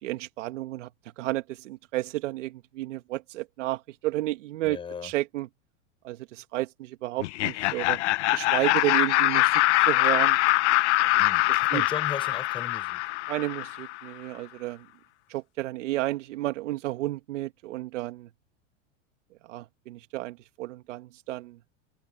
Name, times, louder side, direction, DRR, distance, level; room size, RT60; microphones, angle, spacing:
voice 1, 0.0-0.9 1.2-5.5 6.0-8.0 8.3-10.4 11.5-11.8 13.3-14.8 15.3-18.3 19.5-21.6, right 17 dB, 75° right, 1.4 m, -32 dB
voice 2, 4.6-5.1 11.1-13.0, left 6 dB, 15° left, 5.4 m, -37 dB
Laughter, 7.2-14.0, left 18 dB, 65° left, 0.6 m, -23 dB
supercardioid pair, 170°, 37 cm